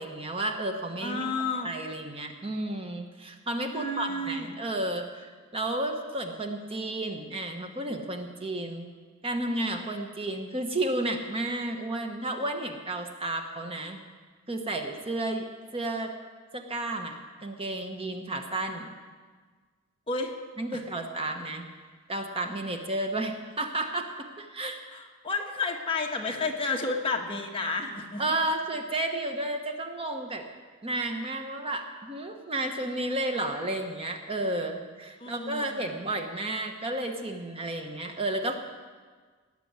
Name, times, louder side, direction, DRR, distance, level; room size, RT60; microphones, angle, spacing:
voice 1, 0.0-1.3 1.6-8.9 9.2-14.0 14.5-15.5 15.7-16.1 16.5-17.1 17.4-18.9 20.6-21.7 22.1-24.1 24.4-24.8 28.2-30.4 30.8-38.7, right 1 dB, 25° right, 4 dB, 1.0 m, -32 dB
voice 2, 1.0-1.7 3.7-4.5 20.1-20.3 20.7-20.8 24.9-28.2 35.2-36.0, left 3 dB, 25° left, 1 dB, 1.4 m, -31 dB
18.0 x 6.9 x 9.4 m, 1.5 s
head